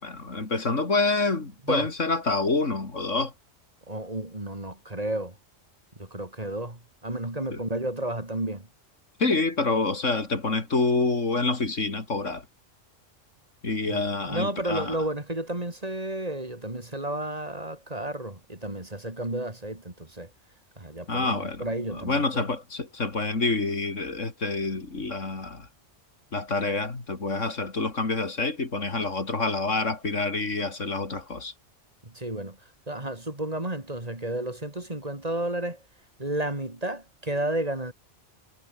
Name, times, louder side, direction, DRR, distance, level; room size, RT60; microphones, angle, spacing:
voice 1, 0.0-3.3 7.5-7.6 9.2-12.4 13.6-15.0 21.1-21.7 21.9-25.7 26.3-31.5, left 3 dB, 85° left, 3.7 m, -27 dB
voice 2, 3.9-5.4 5.9-8.7 13.9-20.3 20.8-22.5 32.0-32.6 32.9-35.8 36.2-37.9, right 1 dB, 30° right, 3.5 m, -32 dB
omnidirectional pair, 1.3 m